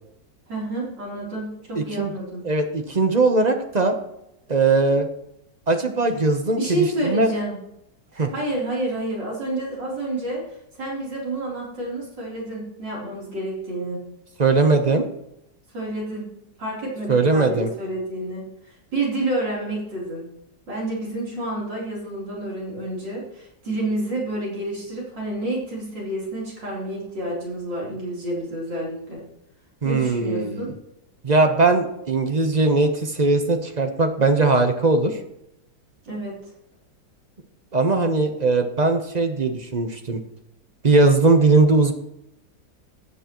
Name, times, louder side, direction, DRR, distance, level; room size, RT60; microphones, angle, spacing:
voice 1, 0.5-2.4 6.6-7.6 8.3-14.0 15.7-16.3 16.6-20.3 20.7-29.2 29.8-30.7 36.0-36.4, right 1 dB, 75° right, -5 dB, 4.4 m, -29 dB
voice 2, 1.7-2.1 2.4-4.0 4.5-5.1 5.7-7.3 8.2-8.3 14.4-15.1 17.1-17.7 29.8-30.7 31.2-35.2 37.7-40.2 40.8-41.9, right 3 dB, 35° right, 5 dB, 0.7 m, -19 dB
15.5 x 9.3 x 3.1 m, 0.83 s
omnidirectional pair, 2.0 m